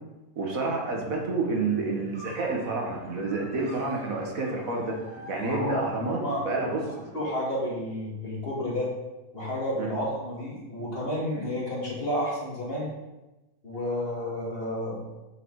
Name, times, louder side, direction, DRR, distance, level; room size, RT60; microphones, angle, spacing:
voice 1, 0.4-5.0 5.3-7.1 9.8-10.0, right 3 dB, 65° right, 0 dB, 1.7 m, -29 dB
sound 1, 0.8-7.4, right 2 dB, 5° left, 3.0 m, -47 dB
sound 2, 2.1-6.3, right 1 dB, 40° right, 2.3 m, -47 dB
voice 2, 5.4-6.4 7.1-8.9 9.3-12.9 13.6-15.1, left 1 dB, 40° left, -5 dB, 2.7 m, -31 dB
7.7 x 6.4 x 4.7 m, 1.0 s
omnidirectional pair, 1.6 m